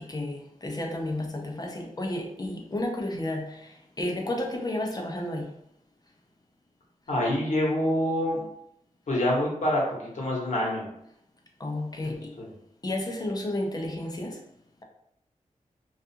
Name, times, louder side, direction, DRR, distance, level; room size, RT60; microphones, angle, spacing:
voice 1, 0.0-5.5 11.6-12.3 12.8-14.4, left 1 dB, 30° left, 0.5 m, -32 dB
voice 2, 7.1-8.4 9.1-9.8 10.1-10.9 12.0-12.5, left 1 dB, 65° left, 1.0 m, -26 dB
2.4 x 2.4 x 2.7 m
wide cardioid pair, 70°, 13 cm